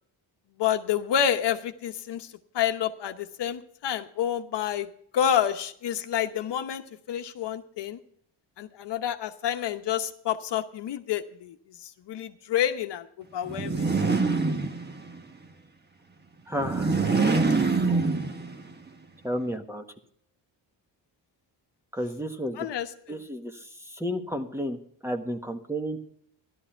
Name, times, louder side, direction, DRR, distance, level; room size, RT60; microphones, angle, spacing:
voice 1, 0.6-2.3 2.5-4.9 5.1-8.0 8.6-11.5 12.1-13.1 13.3-13.9 22.6-23.2, left 9 dB, 65° left, 8 dB, 1.0 m, -28 dB
sound 1, 13.5-15.2 16.5-18.7, right 4 dB, 20° right, 1.3 m, -25 dB
voice 2, 16.5-17.0 19.2-19.8 21.9-22.7 23.1-26.0, equal, 5° right, 6 dB, 1.4 m, -32 dB
14.0 x 12.0 x 4.5 m, 0.65 s
cardioid pair, 120°, 44 cm